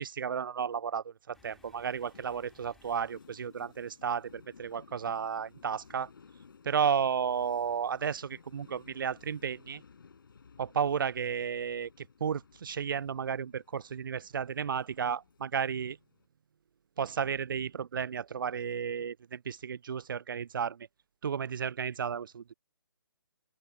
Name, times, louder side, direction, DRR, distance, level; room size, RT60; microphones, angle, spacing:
voice 1, 0.0-6.1 6.6-9.8 10.6-16.0 17.0-20.9 21.2-22.5, right 7 dB, 60° right, 0.4 m, -33 dB
sound 1, 1.3-16.3, left 5 dB, 60° left, 7.6 m, -58 dB
sound 2, 1.3-5.2, left 2 dB, ahead, 2.2 m, -66 dB
open air
figure-of-eight pair, 140°, 13 cm